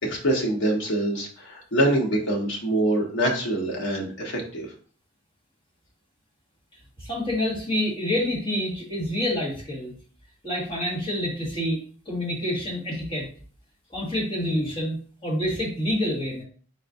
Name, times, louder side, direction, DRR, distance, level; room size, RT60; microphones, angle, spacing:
voice 1, 0.0-4.7, right 1 dB, 55° left, -1 dB, 1.2 m, -25 dB
voice 2, 7.0-9.9 10.4-11.8 12.0-13.3 13.9-16.4, left 1 dB, 25° left, -5 dB, 1.6 m, -27 dB
4.3 x 4.0 x 2.6 m, 0.43 s
head